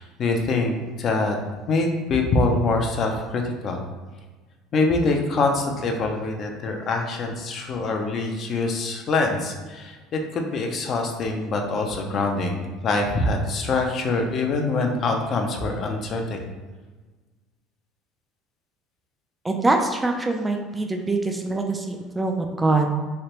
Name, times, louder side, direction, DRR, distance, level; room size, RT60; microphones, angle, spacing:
voice 1, 0.0-1.4 1.7-3.8 4.7-16.4, left 3 dB, 45° left, 3 dB, 0.5 m, -24 dB
voice 2, 19.4-22.9, right 2 dB, 15° right, 3 dB, 0.3 m, -24 dB
3.2 x 2.9 x 2.9 m, 1.3 s
supercardioid pair, 110°, 0 cm